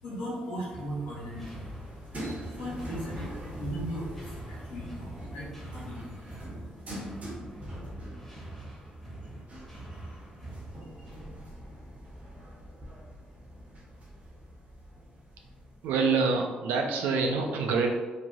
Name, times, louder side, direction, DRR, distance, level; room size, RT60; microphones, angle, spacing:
voice 1, 0.0-1.7 2.2-6.1, equal, 80° left, -7 dB, 1.2 m, -38 dB
sound 1, 0.7-11.5, right 2 dB, 5° left, 1.2 m, -45 dB
sound 2, 1.4-16.2, equal, 45° right, 1.2 m, -44 dB
voice 2, 15.8-17.9, right 4 dB, 85° right, 3 dB, 0.4 m, -26 dB
3.1 x 2.2 x 2.6 m, 1.3 s
supercardioid pair, 55°, 3 cm